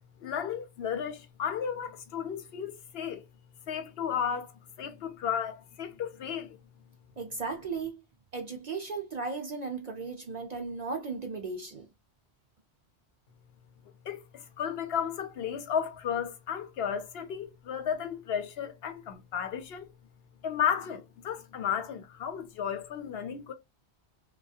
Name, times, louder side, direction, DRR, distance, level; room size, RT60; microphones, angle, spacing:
voice 1, 0.2-3.2 3.7-6.6 14.1-19.9 20.4-23.5, left 8 dB, 70° left, 0.8 m, -33 dB
voice 2, 7.2-8.0 8.3-11.9, right 4 dB, 50° right, 0.5 m, -36 dB
3.1 x 2.3 x 2.6 m
omnidirectional pair, 1.1 m